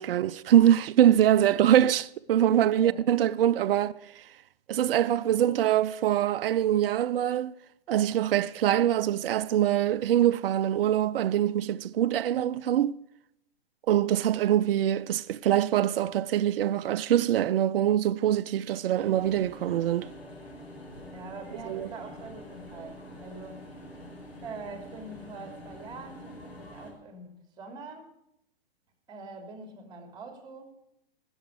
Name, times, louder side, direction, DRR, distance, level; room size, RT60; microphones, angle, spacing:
voice 1, 0.0-3.9 4.7-7.5 7.9-13.0 13.9-20.1 21.7-21.9, right 11 dB, 65° right, 0.6 m, -24 dB
voice 2, 2.5-3.0 21.1-23.6 24.4-28.1 29.1-30.7, right 3 dB, 15° right, 2.9 m, -44 dB
sound 1, 18.9-26.9, left 1 dB, 85° left, 4.9 m, -46 dB
18.5 x 7.2 x 6.5 m
hypercardioid pair, 120°, 30 cm